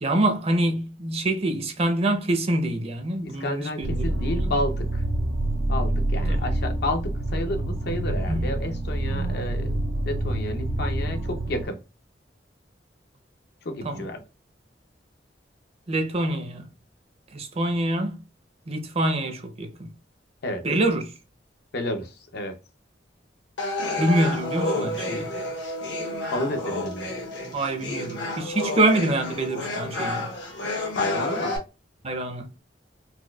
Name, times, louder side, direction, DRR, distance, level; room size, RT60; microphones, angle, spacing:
voice 1, 0.0-4.5 6.3-6.4 8.3-8.5 13.8-14.1 15.9-16.7 17.3-18.2 18.7-19.9 20.6-21.1 24.0-25.4 27.5-30.3 32.0-32.5, right 1 dB, 35° right, 0.6 m, -25 dB
voice 2, 3.2-5.0 5.7-9.8 10.0-11.8 13.6-14.2 20.4-20.7 21.7-22.6 26.3-27.1 30.9-31.6, left 1 dB, 60° left, 0.6 m, -31 dB
sound 1, 3.8-11.6, right 1 dB, 70° right, 0.8 m, -27 dB
sound 2, 23.6-31.6, left 2 dB, 75° left, 1.1 m, -30 dB
4.2 x 2.2 x 2.3 m
head